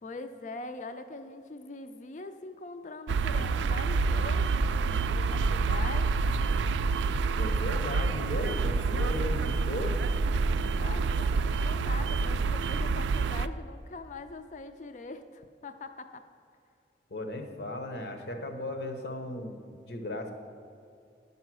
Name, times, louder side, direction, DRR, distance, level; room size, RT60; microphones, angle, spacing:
voice 1, 0.0-6.1 10.8-16.3, left 3 dB, 45° left, 9 dB, 0.4 m, -42 dB
sound 1, 3.1-13.5, right 4 dB, 85° right, 0.3 m, -27 dB
voice 2, 7.4-10.0 17.1-20.3, left 1 dB, 75° left, 4 dB, 1.0 m, -36 dB
10.5 x 5.5 x 6.1 m, 2.5 s
head